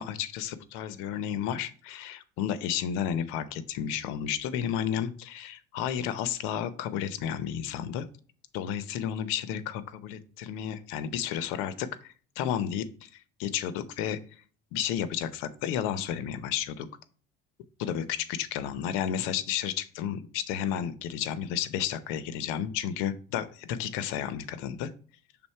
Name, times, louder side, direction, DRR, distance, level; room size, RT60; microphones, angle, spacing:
voice 1, 0.0-8.1 8.5-13.1 13.4-14.2 14.7-16.9 17.8-24.9, left 9 dB, 80° left, 15 dB, 0.7 m, -32 dB
6.1 x 3.6 x 4.3 m, 0.41 s
cardioid pair, 125°, 21 cm